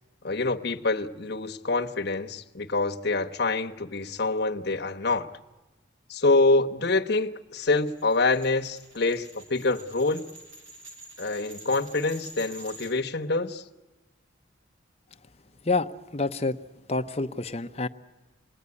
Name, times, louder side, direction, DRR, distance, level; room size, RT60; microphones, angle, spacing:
voice 1, 0.2-5.3 6.1-10.2 11.2-13.6, left 3 dB, 55° left, 1.1 m, -26 dB
sound 1, 7.6-12.9, right 2 dB, 80° right, 5.6 m, -47 dB
voice 2, 15.7-16.6 16.9-17.9, left 3 dB, 30° left, 0.8 m, -28 dB
28.0 x 20.0 x 9.7 m
head